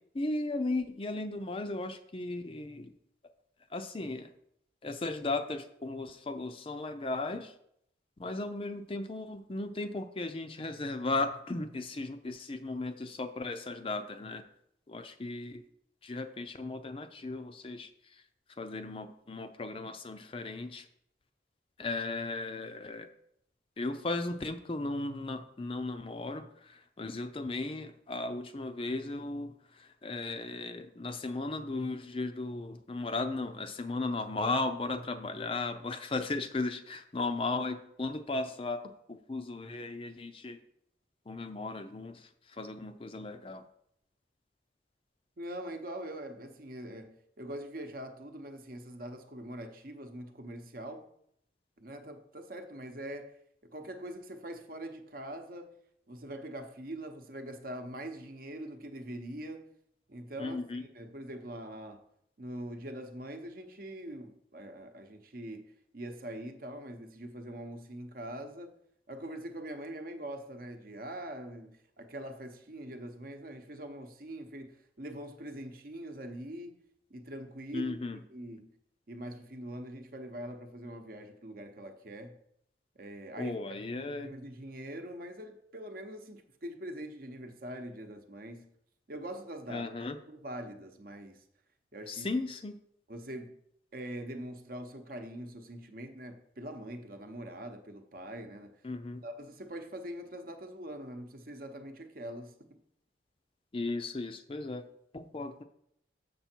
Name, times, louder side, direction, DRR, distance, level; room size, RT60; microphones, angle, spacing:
voice 1, 0.1-2.9 3.7-4.3 4.8-7.5 8.2-14.4 14.9-15.6 16.0-18.2 18.6-20.9 21.8-23.1 23.8-38.8 39.1-40.6 41.3-43.6 60.4-60.8 77.7-78.2 83.4-84.3 89.7-90.2 92.1-92.8 98.8-99.2 103.7-104.8 105.1-105.6, left 2 dB, 30° left, 0.4 m, -36 dB
voice 2, 45.4-51.1 51.8-53.4 53.7-55.7 56.1-59.6 60.1-60.6 60.9-62.0 62.4-68.7 69.1-76.8 77.1-77.9 78.3-78.7 79.1-82.4 82.9-83.6 84.0-88.7 89.1-89.9 90.3-91.4 91.9-92.3 93.1-93.5 93.9-98.7 99.2-102.5, right 1 dB, 50° right, 0.9 m, -43 dB
6.9 x 6.6 x 4.4 m
head